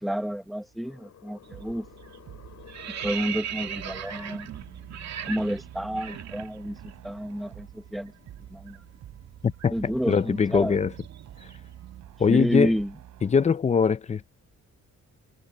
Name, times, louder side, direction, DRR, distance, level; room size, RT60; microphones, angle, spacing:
voice 1, 0.0-1.9 3.0-4.5 5.3-8.1 8.5-8.8 9.7-10.8 12.3-12.9, equal, ahead, 1.0 m, -30 dB
sound 1, 0.8-11.2, left 9 dB, 55° left, 6.6 m, -55 dB
sound 2, 1.4-1.7 2.0-7.0 7.2-7.4 7.7-11.8, right 9 dB, 60° right, 2.3 m, -39 dB
sound 3, 1.5-13.5, right 11 dB, 75° right, 5.1 m, -47 dB
voice 2, 9.4-9.7 10.1-10.9 12.2-12.7 13.2-14.3, left 6 dB, 20° left, 0.5 m, -22 dB
cardioid pair, 155°, 31 cm